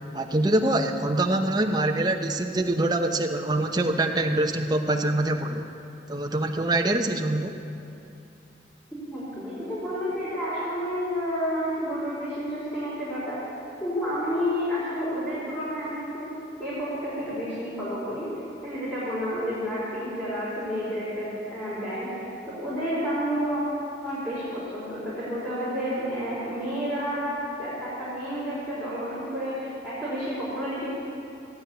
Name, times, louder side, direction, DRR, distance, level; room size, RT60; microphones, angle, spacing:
voice 1, 0.1-5.7 6.1-7.6, right 1 dB, 20° right, 4 dB, 0.8 m, -24 dB
voice 2, 9.1-13.4 13.8-16.3 16.6-18.3 18.6-23.6 24.0-30.9, equal, 10° left, -11 dB, 4.0 m, -30 dB
15.0 x 9.4 x 8.2 m, 2.7 s
head